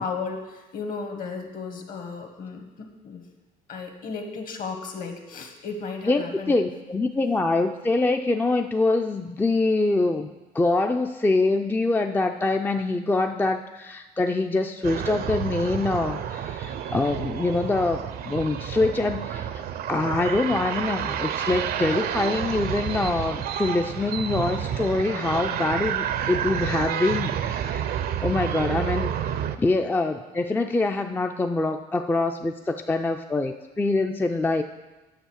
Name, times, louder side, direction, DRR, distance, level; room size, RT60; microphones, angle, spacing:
voice 1, 0.0-3.2 3.7-6.6, left 4 dB, 55° left, 5 dB, 1.5 m, -34 dB
voice 2, 6.1-10.3 10.5-19.6 19.9-27.8 28.2-29.1 29.6-34.6, left 2 dB, 10° left, 5 dB, 0.4 m, -24 dB
sound 1, 14.8-29.6, right 9 dB, 65° right, 0.6 m, -29 dB
8.1 x 6.5 x 6.4 m, 1.1 s
cardioid pair, 110°, 17 cm